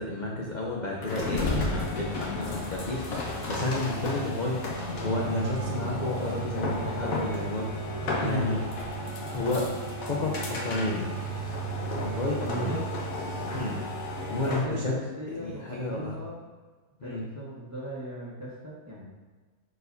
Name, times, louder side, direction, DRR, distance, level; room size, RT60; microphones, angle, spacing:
voice 1, 0.0-4.6 5.0-7.7 8.0-8.6 9.3-9.7 10.0-11.1 12.0-12.8 13.5-13.8 14.3-14.9 15.3-16.2 17.0-17.3, left 2 dB, 40° left, -3 dB, 0.7 m, -31 dB
sound 1, 1.0-14.7, equal, 65° left, 1.5 m, -32 dB
voice 2, 8.2-8.5 12.4-12.9 14.4-16.4 17.0-19.1, right 1 dB, 10° right, -6 dB, 1.5 m, -37 dB
10.5 x 4.6 x 2.7 m, 1.4 s
omnidirectional pair, 1.6 m